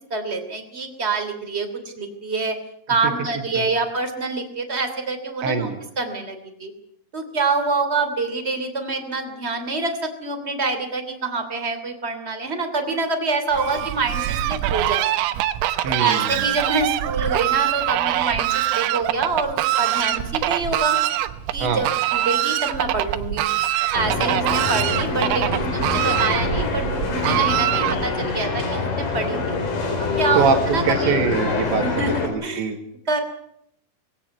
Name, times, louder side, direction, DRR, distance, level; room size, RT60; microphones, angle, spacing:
voice 1, 0.1-1.7 2.0-2.6 2.9-5.7 6.0-6.7 7.1-15.1 16.0-21.0 21.5-23.4 23.9-26.8 27.1-29.6 30.0-31.2 31.8-32.7 33.1-33.2, right 3 dB, 20° right, 6 dB, 2.0 m, -26 dB
voice 2, 5.4-5.8 15.8-16.5 21.6-21.9 30.4-31.8 32.2-32.8, right 5 dB, 70° right, 5 dB, 4.0 m, -23 dB
Fowl, 13.5-28.3, right 14 dB, 85° right, 3.7 m, -24 dB
sound 1, 23.9-32.3, left 3 dB, 45° left, 5.0 m, -25 dB
21.5 x 17.0 x 9.3 m, 0.72 s
omnidirectional pair, 5.7 m